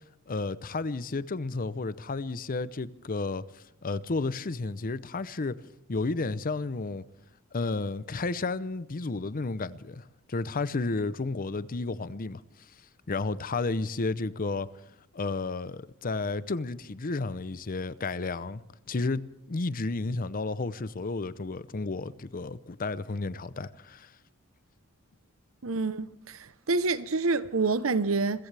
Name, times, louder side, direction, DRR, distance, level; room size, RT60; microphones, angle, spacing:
voice 1, 0.3-5.6 5.9-7.0 7.5-12.4 13.1-14.7 15.1-18.6 18.9-24.1, left 3 dB, 45° left, 0.7 m, -32 dB
voice 2, 25.6-28.5, right 3 dB, 70° right, 0.9 m, -28 dB
27.0 x 15.5 x 3.4 m
head